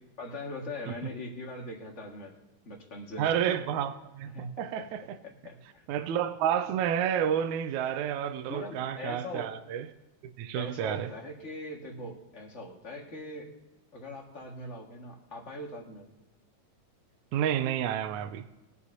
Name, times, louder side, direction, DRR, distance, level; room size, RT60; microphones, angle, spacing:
voice 1, 0.2-2.3 2.6-3.6 4.3-4.6 5.2-5.8 8.5-9.5 10.5-13.5 13.9-16.1, left 1 dB, 30° left, 1.3 m, -41 dB
voice 2, 3.2-5.2 5.9-9.9 10.4-11.1 17.3-18.5, right 9 dB, 80° right, 1.9 m, -30 dB
21.5 x 8.2 x 2.7 m
omnidirectional pair, 3.8 m